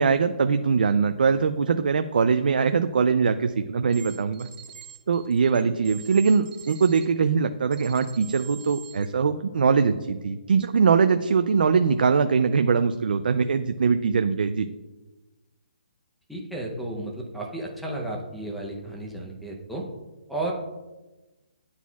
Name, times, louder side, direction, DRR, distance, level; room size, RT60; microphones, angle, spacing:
voice 1, 0.0-4.5 5.1-14.7, right 5 dB, 65° right, 9 dB, 0.4 m, -22 dB
sound 1, 3.9-7.1 7.7-9.1, right 8 dB, 85° right, 1.4 m, -45 dB
voice 2, 16.3-19.8 20.3-20.5, right 2 dB, ahead, -2 dB, 0.6 m, -33 dB
11.0 x 4.1 x 2.3 m, 1.1 s
hypercardioid pair, 170°, 5 cm